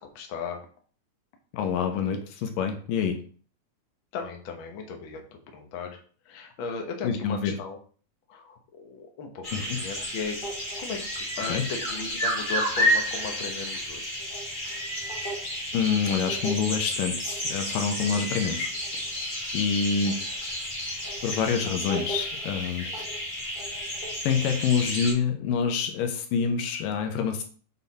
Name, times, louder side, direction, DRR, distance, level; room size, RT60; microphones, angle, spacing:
voice 1, 0.1-0.6 4.1-6.0 6.3-7.8 8.3-9.4 9.7-10.4 10.8-14.2, left 5 dB, 60° left, 3 dB, 1.3 m, -36 dB
voice 2, 1.5-3.2 7.0-7.6 9.5-9.8 11.5-11.6 15.7-18.7 19.5-20.2 21.2-23.1 24.2-27.4, left 6 dB, 80° left, 5 dB, 2.6 m, -27 dB
sound 1, 9.4-25.1, equal, 30° left, 0.9 m, -31 dB
7.0 x 4.0 x 4.1 m, 0.43 s
omnidirectional pair, 3.9 m